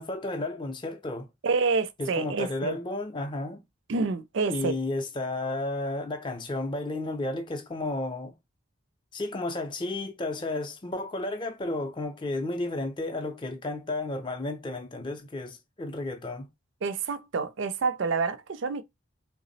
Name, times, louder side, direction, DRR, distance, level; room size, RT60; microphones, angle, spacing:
voice 1, 0.0-1.3 2.0-3.6 4.5-8.3 9.1-16.5, left 2 dB, 25° left, 0.4 m, -32 dB
voice 2, 1.4-2.8 3.9-4.8 16.8-18.8, right 4 dB, 60° right, 0.4 m, -28 dB
3.4 x 2.0 x 3.9 m
head